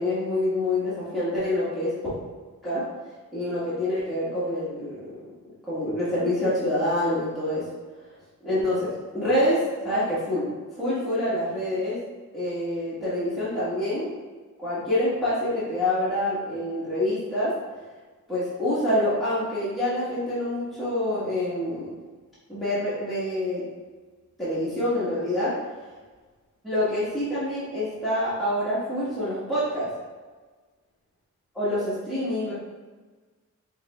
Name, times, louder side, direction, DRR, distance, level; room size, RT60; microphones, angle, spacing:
voice 1, 0.0-1.9 2.6-2.8 3.3-5.1 5.7-7.6 8.4-10.5 10.7-12.0 12.3-14.1 14.6-17.5 18.3-21.9 22.5-23.6 24.4-25.5 26.6-29.9 31.5-32.5, left 1 dB, ahead, -13 dB, 1.3 m, -26 dB
4.8 x 3.6 x 2.3 m, 1.4 s
wide cardioid pair, 140°, 32 cm